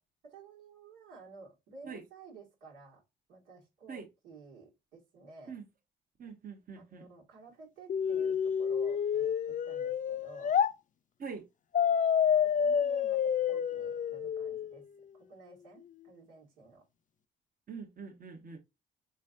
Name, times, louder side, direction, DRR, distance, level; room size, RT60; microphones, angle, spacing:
voice 1, 0.2-3.0 3.3-5.6 6.8-10.6 12.4-14.9 15.1-16.8, right 3 dB, 90° right, 2.1 m, -53 dB
voice 2, 6.2-7.1 11.2-11.4 17.7-18.6, right 5 dB, 45° right, 1.2 m, -44 dB
sound 1, 7.9-10.7 11.7-14.8, left 8 dB, 40° left, 0.4 m, -29 dB
4.6 x 3.2 x 2.6 m
supercardioid pair, 65°, 20 cm